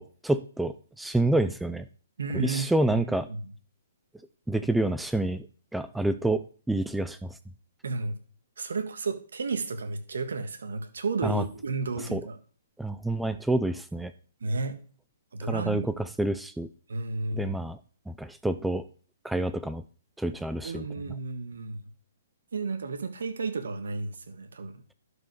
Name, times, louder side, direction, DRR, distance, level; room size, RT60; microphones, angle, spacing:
voice 1, 0.0-1.8 2.3-3.3 4.5-5.5 5.7-7.3 11.2-11.4 12.1-12.2 12.8-14.1 15.4-16.7 17.3-17.8 18.1-18.8 19.2-19.8 20.2-20.8, right 2 dB, 5° right, 12 dB, 0.4 m, -28 dB
voice 2, 2.2-3.4 7.8-8.2 8.6-12.4 14.4-14.8 15.3-15.9 16.9-17.6 20.6-21.8 22.5-24.8, right 4 dB, 75° right, 8 dB, 1.7 m, -32 dB
11.5 x 5.3 x 4.9 m, 0.40 s
hypercardioid pair, 145°, 0 cm